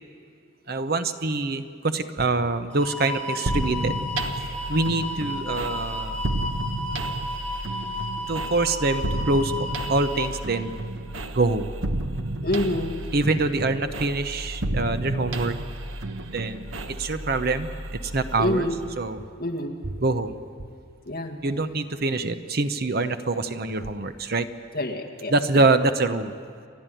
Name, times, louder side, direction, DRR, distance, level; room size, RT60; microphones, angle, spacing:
voice 1, 0.7-4.0 4.3-6.2 8.3-10.7 11.3-11.7 13.1-15.5 16.3-16.7 17.0-18.7 19.0-19.2 20.0-20.4 21.4-24.5 25.3-26.3, right 2 dB, 50° right, 10 dB, 0.8 m, -25 dB
sound 1, 2.7-10.3, left 1 dB, 5° left, 1.9 m, -33 dB
sound 2, 3.5-19.1, right 1 dB, 80° right, 1.3 m, -32 dB
voice 2, 12.4-13.0 18.4-18.8 19.4-19.8 21.1-21.4 24.7-25.7, left 1 dB, 45° left, 3 dB, 2.0 m, -27 dB
29.5 x 12.0 x 9.2 m, 2.2 s
head